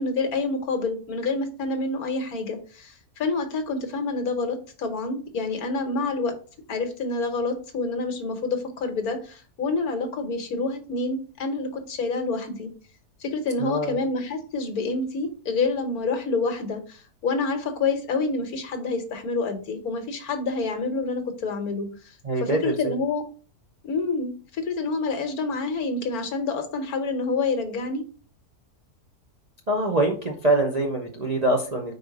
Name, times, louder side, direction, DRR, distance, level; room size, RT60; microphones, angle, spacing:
voice 1, 0.0-6.3 6.7-12.7 13.2-22.1 22.4-23.2 23.8-28.1, left 3 dB, 70° left, 7 dB, 1.5 m, -28 dB
voice 2, 13.6-14.0 22.2-23.0 29.7-31.9, right 2 dB, 40° right, -1 dB, 0.6 m, -24 dB
4.9 x 4.3 x 4.6 m, 0.39 s
omnidirectional pair, 1.7 m